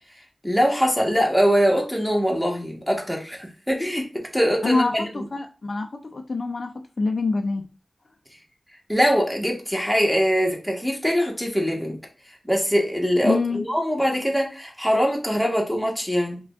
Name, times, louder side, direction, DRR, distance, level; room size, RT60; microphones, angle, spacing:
voice 1, 0.4-5.1 8.9-12.0 12.5-16.4, equal, ahead, 0 dB, 1.2 m, -22 dB
voice 2, 4.6-6.7 7.0-7.7 13.2-13.6, left 3 dB, 55° left, 5 dB, 0.4 m, -25 dB
4.9 x 2.3 x 3.4 m, 0.34 s
wide cardioid pair, 70°, 0 cm